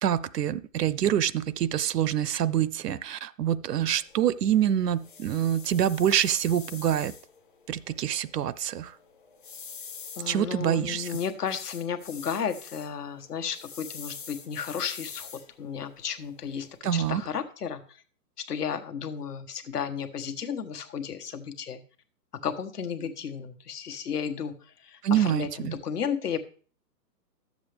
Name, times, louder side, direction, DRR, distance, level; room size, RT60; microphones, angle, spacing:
voice 1, 0.0-7.1 7.7-9.0 10.3-11.2 16.8-17.2 25.0-25.8, right 10 dB, 75° right, 18 dB, 0.6 m, -26 dB
sound 1, 3.8-16.8, left 6 dB, 30° left, 0.7 m, -46 dB
voice 2, 10.2-15.3 15.6-18.0 18.5-21.8 22.4-24.5 24.8-26.4, left 7 dB, 70° left, 9 dB, 1.3 m, -33 dB
11.5 x 7.2 x 3.4 m, 0.42 s
hypercardioid pair, 170°, 49 cm